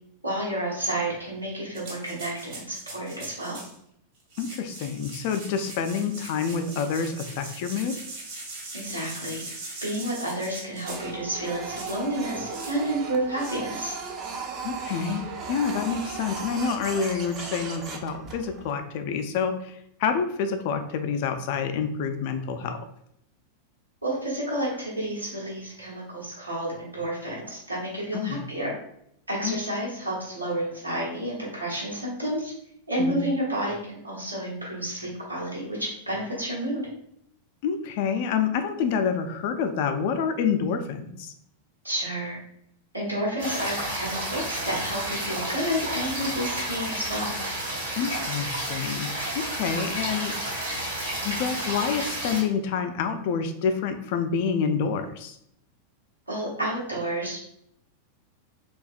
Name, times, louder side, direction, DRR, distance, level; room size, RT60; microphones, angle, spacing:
voice 1, 0.2-3.6 8.7-9.4 9.8-14.0 24.0-28.7 29.3-32.5 32.9-36.9 41.8-42.4 42.9-47.3 56.3-57.4, right 1 dB, 85° right, -5 dB, 0.9 m, -30 dB
sound 1, 1.7-3.8 4.2-11.2 11.8-12.0 12.5-12.8 13.3-13.5, right 2 dB, 50° right, 0.8 m, -41 dB
voice 2, 4.4-7.9 14.6-22.8 28.1-28.4 29.4-29.6 33.0-33.2 37.6-41.3 48.0-49.1 49.3-50.4 51.2-55.4, left 6 dB, 50° left, 8 dB, 0.3 m, -28 dB
Printer, 10.8-18.7, right 5 dB, 30° right, 0.4 m, -36 dB
sound 2, 43.4-52.4, right 1 dB, 70° right, 1.0 m, -31 dB
2.6 x 2.2 x 2.4 m, 0.73 s
figure-of-eight pair, 90°, 0 cm